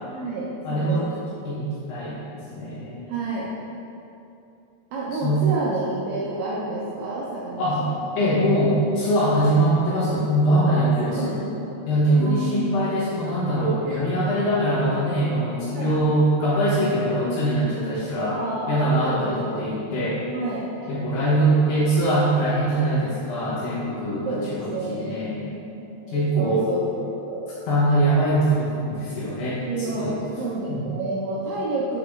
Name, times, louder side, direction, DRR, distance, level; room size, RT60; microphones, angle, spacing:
voice 1, 0.1-1.5 3.1-3.5 4.9-8.0 10.7-11.8 12.2-12.7 13.8-14.0 15.7-15.9 18.3-21.1 24.3-27.5 29.7-32.0, right 2 dB, 85° right, -7 dB, 2.3 m, -30 dB
voice 2, 0.6-1.1 1.4-2.2 2.5-3.0 5.2-5.4 7.6-7.8 8.2-11.3 11.9-18.4 18.7-20.2 20.9-25.3 26.1-26.7 27.7-30.1 30.7-30.9, right 1 dB, 70° left, -8 dB, 2.8 m, -22 dB
7.8 x 3.8 x 3.6 m, 2.8 s
omnidirectional pair, 5.5 m